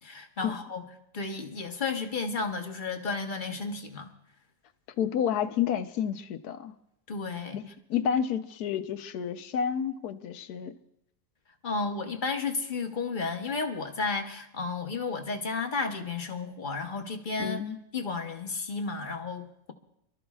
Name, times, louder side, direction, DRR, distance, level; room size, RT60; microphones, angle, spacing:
voice 1, 0.0-0.8 1.1-4.1 7.1-7.6 11.6-17.6 17.9-19.7, left 4 dB, 35° left, 1.0 m, -32 dB
voice 2, 5.0-6.7 7.5-10.7 17.4-17.8, left 8 dB, 75° left, 1.2 m, -30 dB
27.5 x 13.0 x 2.4 m
omnidirectional pair, 1.7 m